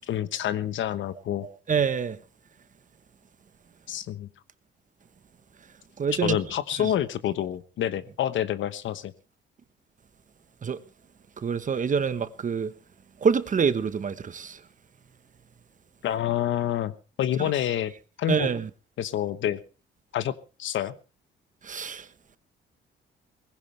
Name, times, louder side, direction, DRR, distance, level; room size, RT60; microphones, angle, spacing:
voice 1, 0.1-1.5 3.9-4.3 6.2-9.1 16.0-16.9 17.2-17.9 18.2-18.5 19.0-19.6 20.1-20.3 20.6-20.9, left 11 dB, 75° left, 1.1 m, -27 dB
voice 2, 1.7-2.2 6.0-6.4 6.8-6.9 10.6-10.8 11.4-12.7 13.2-14.6 17.4-17.5 18.3-18.7 21.6-22.1, right 6 dB, 40° right, 1.1 m, -26 dB
19.5 x 16.0 x 3.3 m
cardioid pair, 90°, 20 cm